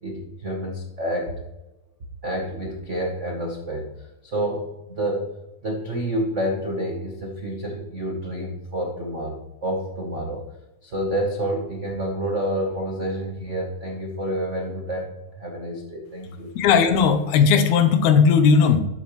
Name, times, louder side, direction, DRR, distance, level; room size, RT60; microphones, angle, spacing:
voice 1, 0.0-1.4 2.2-5.3 5.6-10.5 10.8-16.5, right 1 dB, 80° right, 0 dB, 0.6 m, -29 dB
voice 2, 16.5-18.8, left 6 dB, 75° left, 8 dB, 2.2 m, -17 dB
12.0 x 7.5 x 3.2 m, 0.98 s
omnidirectional pair, 3.4 m